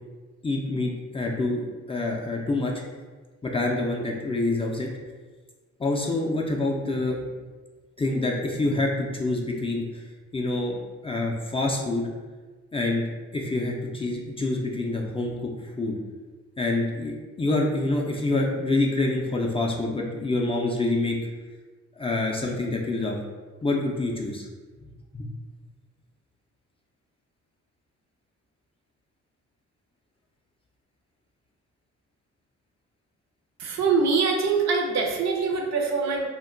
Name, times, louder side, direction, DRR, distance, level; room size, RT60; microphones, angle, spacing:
voice 1, 0.4-2.7 3.4-4.9 5.8-7.3 8.0-10.0 10.3-10.8 11.0-12.1 12.7-13.1 13.3-15.5 15.8-16.0 16.6-21.2 22.0-23.2 23.6-24.5 25.1-25.3, left 2 dB, 20° left, -1 dB, 0.3 m, -26 dB
voice 2, 33.6-36.3, right 4 dB, 65° right, 2 dB, 0.5 m, -24 dB
2.2 x 2.1 x 3.7 m, 1.4 s
cardioid pair, 90°, 30 cm